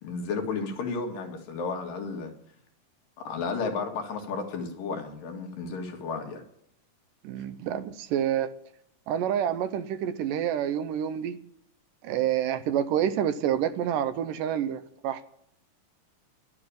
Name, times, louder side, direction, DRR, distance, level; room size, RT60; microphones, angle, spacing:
voice 1, 0.0-2.3 3.2-6.4, left 4 dB, 75° left, 3.4 m, -33 dB
voice 2, 7.2-8.5 9.1-11.4 12.0-15.2, right 10 dB, 80° right, 2.3 m, -28 dB
11.5 x 8.8 x 9.7 m
omnidirectional pair, 3.9 m